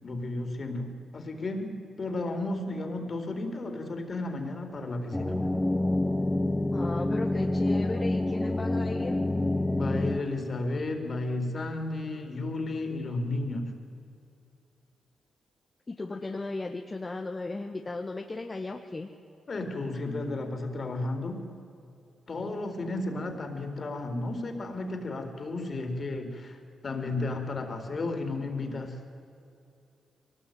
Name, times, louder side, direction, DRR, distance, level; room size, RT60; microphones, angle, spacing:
voice 1, 0.0-5.5 9.7-13.7 19.5-21.4 22.3-29.0, left 2 dB, 45° left, 6 dB, 4.1 m, -33 dB
sound 1, 5.1-10.2, left 2 dB, 10° left, 1.9 m, -27 dB
voice 2, 6.7-9.2 15.9-19.1, left 3 dB, 30° left, 3 dB, 1.6 m, -35 dB
23.0 x 19.5 x 9.4 m, 2.6 s
cardioid pair, 75°, 0 cm